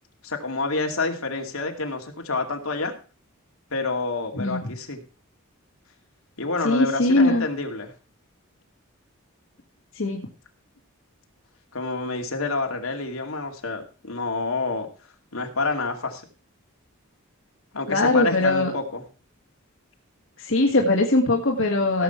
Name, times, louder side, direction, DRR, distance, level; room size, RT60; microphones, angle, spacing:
voice 1, 0.2-2.9 3.7-5.0 6.4-7.9 11.7-14.9 15.3-16.2 17.7-19.0, left 3 dB, 80° left, 3 dB, 2.5 m, -28 dB
voice 2, 4.3-4.7 6.6-7.4 10.0-10.2 17.9-18.7 20.4-22.0, left 2 dB, 65° left, 1 dB, 2.0 m, -21 dB
17.0 x 7.6 x 4.5 m, 0.36 s
head